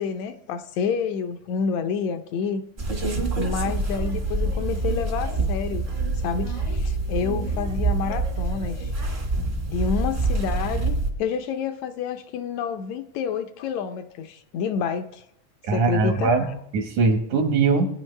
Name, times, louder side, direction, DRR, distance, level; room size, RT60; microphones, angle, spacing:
voice 1, 0.0-2.6 3.4-5.9 6.1-8.9 9.7-15.2 15.7-16.6, left 6 dB, 75° left, 1.9 m, -29 dB
sound 1, 2.8-11.1, right 3 dB, 40° right, 0.8 m, -26 dB
voice 2, 15.7-17.9, right 4 dB, 75° right, 2.8 m, -21 dB
21.5 x 9.8 x 3.3 m
omnidirectional pair, 3.4 m